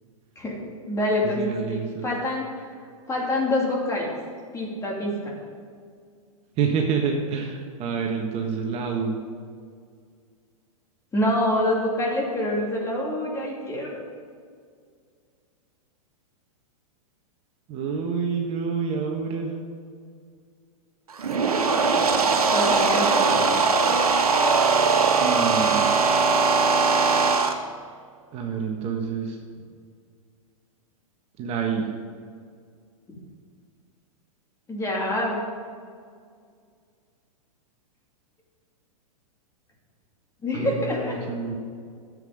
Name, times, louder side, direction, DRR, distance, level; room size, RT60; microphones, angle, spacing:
voice 1, 0.4-2.7 3.1-4.1 4.5-5.3 11.1-14.0 22.5-23.3 33.1-33.2 34.7-35.4 40.4-41.2, left 1 dB, 15° left, -2 dB, 2.7 m, -26 dB
voice 2, 1.4-2.1 6.6-9.2 17.7-19.5 25.2-25.9 28.3-29.4 31.4-31.9 40.5-41.6, right 6 dB, 35° right, 1 dB, 1.4 m, -27 dB
sound 1, 21.1-27.5, right 4 dB, 85° right, 1.4 m, -20 dB
12.5 x 7.9 x 5.3 m, 2.1 s
hypercardioid pair, 120°, 18 cm